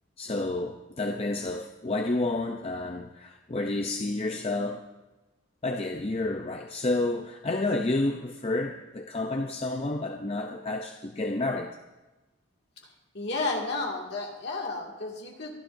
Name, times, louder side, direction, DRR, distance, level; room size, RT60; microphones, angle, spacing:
voice 1, 0.2-4.8 5.6-11.8, left 2 dB, 30° left, 4 dB, 0.5 m, -30 dB
voice 2, 13.1-15.5, left 3 dB, 55° left, -1 dB, 2.2 m, -32 dB
23.5 x 11.5 x 2.6 m, 1.1 s
head